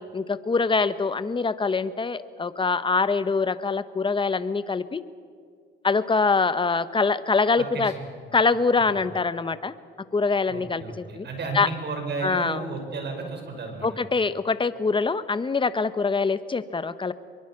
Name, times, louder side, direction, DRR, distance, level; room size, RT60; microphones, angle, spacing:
voice 1, 0.0-5.0 5.8-7.9 8.3-9.7 10.1-11.3 11.5-11.7 12.2-12.6 13.8-17.1, left 4 dB, 25° left, 13 dB, 1.1 m, -24 dB
voice 2, 7.6-8.0 8.9-9.0 10.5-13.9, right 4 dB, 60° right, 4 dB, 5.9 m, -33 dB
24.0 x 22.5 x 6.0 m, 2.2 s
cardioid pair, 90°, 20 cm